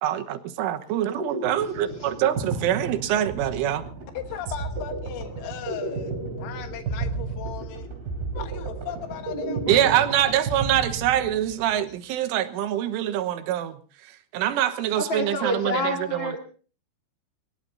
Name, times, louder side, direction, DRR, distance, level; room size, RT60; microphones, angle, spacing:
voice 1, 0.0-3.9 9.7-13.8 14.0-16.4, right 11 dB, 80° right, 9 dB, 3.6 m, -25 dB
sound 1, 0.9-11.7, right 3 dB, 50° right, 5.1 m, -33 dB
voice 2, 4.2-7.9 8.3-10.4, left 10 dB, 85° left, 6 dB, 4.0 m, -37 dB
voice 3, 15.0-16.4, left 1 dB, 55° left, 2 dB, 1.3 m, -28 dB
23.5 x 21.0 x 2.7 m, 0.40 s
omnidirectional pair, 5.8 m